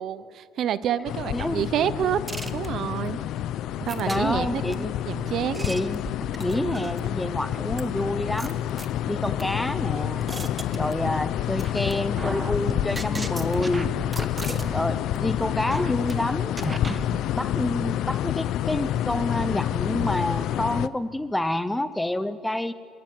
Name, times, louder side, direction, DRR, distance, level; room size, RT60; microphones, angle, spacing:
voice 1, 0.0-2.2 2.5-3.2 3.8-5.7, right 9 dB, 45° right, 16 dB, 0.7 m, -28 dB
sound 1, 1.1-20.9, left 12 dB, 55° left, 0.6 m, -28 dB
voice 2, 1.3-1.7 4.0-5.0 5.7-6.1 6.4-8.6 9.0-10.3 10.7-13.9 14.7-16.5 17.4-22.7, left 1 dB, 5° left, 14 dB, 0.6 m, -28 dB
sound 2, 1.9-15.7, right 6 dB, 80° right, 1.8 m, -49 dB
sound 3, 2.3-3.1 3.9-4.7 5.3-7.1 7.8-7.9 8.4-9.4 9.9-11.3 11.6-11.9 12.2-14.8 15.1-15.3 15.7-16.1 16.6-17.2, right 2 dB, 10° right, 1.1 m, -35 dB
26.5 x 17.5 x 9.4 m, 2.2 s
cardioid pair, 175°, 0 cm